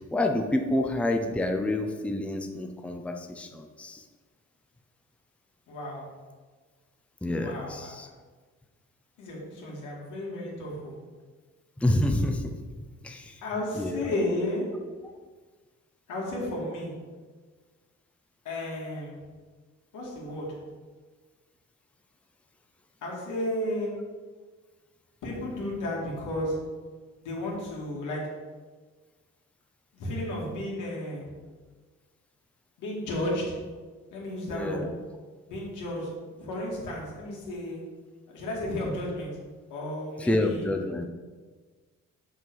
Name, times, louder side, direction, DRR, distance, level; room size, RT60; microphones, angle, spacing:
voice 1, 0.0-4.0 7.2-8.1 11.8-13.4 13.7-14.1 34.5-35.0 40.2-41.1, left 1 dB, 5° left, 4 dB, 0.6 m, -28 dB
voice 2, 5.7-6.1 7.4-7.8 8.0-8.1 9.2-11.0 13.4-14.7 16.1-16.9 18.4-19.2 19.9-20.5 23.0-23.9 25.2-26.6 27.2-28.2 29.9-31.3 32.8-33.6 34.1-34.8 35.5-37.8 38.3-39.3 39.7-40.7, left 1 dB, 85° left, -3 dB, 2.2 m, -33 dB
6.1 x 5.3 x 4.7 m, 1.4 s
cardioid pair, 90°, 30 cm